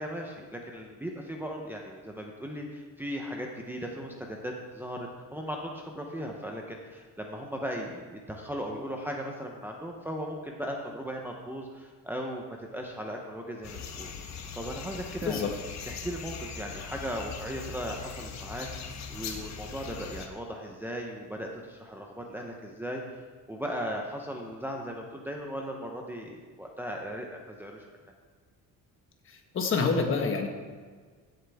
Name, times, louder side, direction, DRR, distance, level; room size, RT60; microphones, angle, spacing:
voice 1, 0.0-14.1 14.5-15.5 15.9-23.2 23.5-27.8, equal, 5° right, 0 dB, 0.8 m, -37 dB
sound 1, 13.6-20.3, left 6 dB, 55° left, 1.2 m, -40 dB
voice 2, 29.3-30.5, left 4 dB, 40° left, 3 dB, 1.4 m, -27 dB
15.5 x 7.6 x 3.5 m, 1.5 s
cardioid pair, 160°, 33 cm